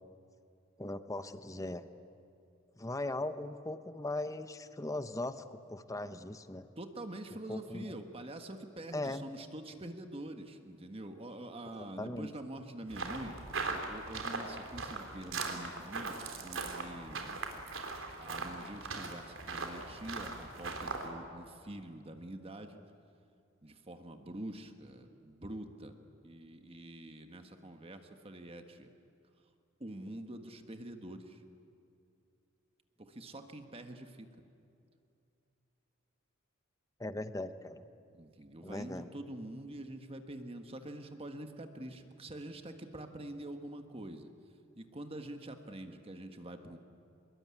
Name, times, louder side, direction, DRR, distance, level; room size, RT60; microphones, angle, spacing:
voice 1, 0.8-1.9 2.8-6.7 7.5-7.9 8.9-9.2 11.8-12.3 37.0-37.8 38.6-39.1, left 2 dB, 15° left, 11 dB, 0.9 m, -39 dB
voice 2, 6.8-13.4 13.7-17.3 18.2-22.8 23.6-26.0 26.2-28.9 29.8-31.4 33.0-34.3 38.1-44.3 44.8-46.8, right 1 dB, 30° right, 6 dB, 1.5 m, -46 dB
sound 1, 12.9-21.1, right 3 dB, 75° right, 3.4 m, -40 dB
25.0 x 21.5 x 9.7 m, 2.6 s
head